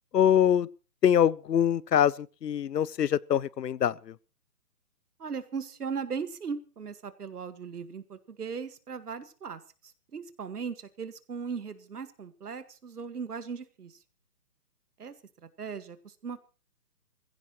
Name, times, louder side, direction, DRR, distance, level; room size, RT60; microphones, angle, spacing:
voice 1, 0.1-0.7 1.0-4.1, left 9 dB, 75° left, 0.7 m, -24 dB
voice 2, 5.2-9.6 10.1-14.0 15.0-15.1 15.6-16.4, right 6 dB, 65° right, 2.0 m, -38 dB
23.0 x 16.0 x 3.1 m
hypercardioid pair, 170°, 50 cm